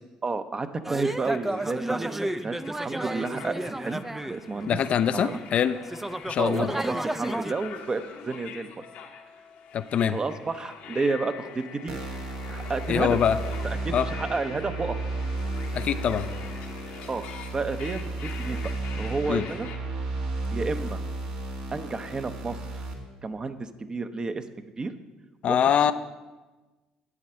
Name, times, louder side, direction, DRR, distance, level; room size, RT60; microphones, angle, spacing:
voice 1, 0.2-4.8 5.1-5.4 6.4-8.7 10.1-12.0 12.5-13.2 13.6-15.0 17.1-17.3 17.5-19.7 20.5-21.0 21.7-22.8 23.2-24.4 24.8-24.9 25.5-25.8, right 3 dB, 30° right, 9 dB, 0.7 m, -31 dB
sound 1, 0.8-4.8 5.3-7.5, right 1 dB, 10° right, 0.4 m, -32 dB
sound 2, 1.1-19.8, left 7 dB, 70° left, 1.0 m, -44 dB
voice 2, 4.7-5.8 6.3-6.7 9.7-10.2 12.9-13.4 13.9-14.0 15.7-16.3 19.3-19.4 25.4-25.9, left 8 dB, 55° left, 11 dB, 0.5 m, -23 dB
sound 3, 11.9-22.9, right 2 dB, 70° right, 1.7 m, -33 dB
11.0 x 8.3 x 4.4 m, 1.2 s
hypercardioid pair, 60°, 3 cm